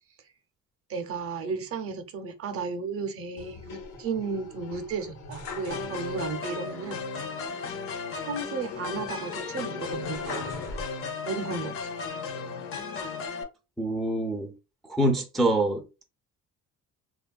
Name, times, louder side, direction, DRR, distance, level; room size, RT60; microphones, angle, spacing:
voice 1, 0.9-7.0 8.2-10.7 11.3-11.7, right 4 dB, 50° right, 0.6 m, -34 dB
sound 1, 3.4-6.4 6.7-6.8 8.6-11.4 11.9-12.7, left 4 dB, 80° left, 0.8 m, -42 dB
sound 2, 5.7-13.4, left 4 dB, 45° left, 0.6 m, -35 dB
voice 2, 13.8-14.5 14.8-16.0, right 1 dB, ahead, 0.3 m, -26 dB
3.0 x 2.3 x 2.3 m
cardioid pair, 135°, 30 cm